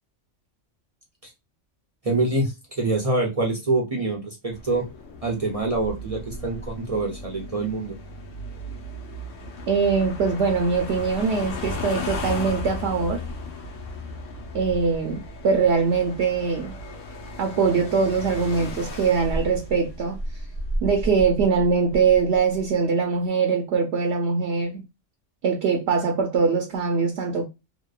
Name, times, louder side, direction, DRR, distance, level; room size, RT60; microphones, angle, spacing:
voice 1, 2.0-4.8 5.2-8.0, right 2 dB, 40° right, 0.5 m, -25 dB
sound 1, 4.5-22.7, left 1 dB, 90° left, 1.1 m, -34 dB
voice 2, 9.7-13.2 14.5-16.7 17.4-20.2 20.8-24.8 25.4-27.4, right 5 dB, 65° right, 0.8 m, -22 dB
2.8 x 2.1 x 2.2 m
omnidirectional pair, 1.3 m